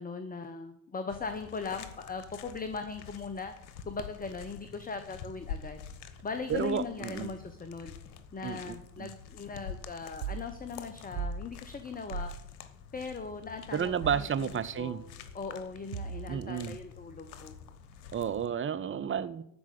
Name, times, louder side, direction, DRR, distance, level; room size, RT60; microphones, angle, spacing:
voice 1, 0.0-3.5 3.8-5.8 6.2-7.9 8.3-12.3 12.9-14.5 14.8-15.0 15.3-17.5, left 4 dB, 15° left, 9 dB, 0.9 m, -39 dB
sound 1, 1.1-18.5, left 7 dB, 65° left, 1.2 m, -47 dB
voice 2, 6.5-7.3 8.4-9.1 13.7-15.1 16.3-16.8 18.1-19.4, right 8 dB, 25° right, 13 dB, 0.7 m, -32 dB
sound 2, 10.2-10.5 11.1-11.4 12.1-12.4 14.0-14.3 15.9-16.4, right 5 dB, 90° right, 0.8 m, -36 dB
12.5 x 4.9 x 8.2 m, 0.76 s
hypercardioid pair, 55°, 50 cm